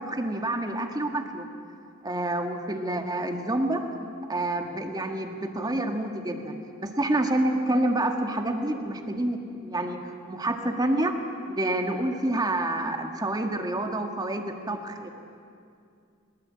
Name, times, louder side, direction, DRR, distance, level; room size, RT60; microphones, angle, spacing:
voice 1, 0.0-1.5 2.0-3.8 4.3-10.0 10.3-11.1 11.5-15.1, right 1 dB, 20° right, 4 dB, 1.7 m, -28 dB
22.5 x 20.0 x 8.7 m, 2.4 s
head